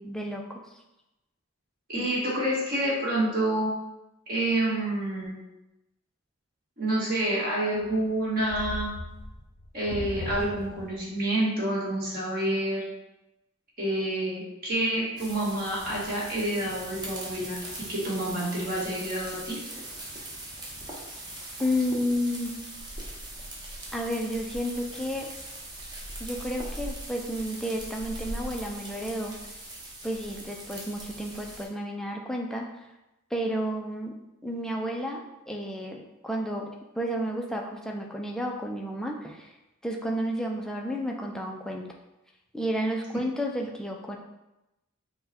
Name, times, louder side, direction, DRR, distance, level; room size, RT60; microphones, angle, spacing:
voice 1, 0.0-0.6 2.0-2.1 21.6-22.6 23.9-25.3 26.2-29.3 30.0-32.7 33.3-34.2 34.4-39.5 39.8-41.9 42.5-44.2, equal, 5° left, 0 dB, 0.4 m, -31 dB
voice 2, 1.9-3.7 4.3-5.4 6.8-8.9 9.7-12.9 13.8-17.6 17.9-19.6, right 1 dB, 45° right, -6 dB, 1.5 m, -28 dB
sound 1, 7.8-11.2, left 1 dB, 85° left, 0.7 m, -38 dB
sound 2, 15.2-31.6, right 1 dB, 20° right, 0.8 m, -40 dB
5.7 x 2.2 x 4.2 m, 0.96 s
head